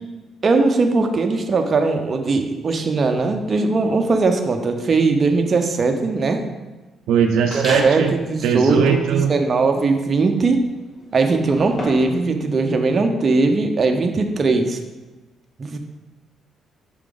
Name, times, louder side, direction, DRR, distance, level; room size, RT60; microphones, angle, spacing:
voice 1, 0.4-6.4 7.5-10.6 11.1-14.8 15.6-15.8, right 3 dB, 40° right, 4 dB, 0.7 m, -19 dB
voice 2, 7.1-8.1 8.4-9.3, right 7 dB, 90° right, 4 dB, 0.5 m, -19 dB
sound 1, 7.5-8.1 8.6-12.2, left 1 dB, 25° left, 1.4 m, -33 dB
6.1 x 4.7 x 3.8 m, 1.2 s
cardioid pair, 90°, 0 cm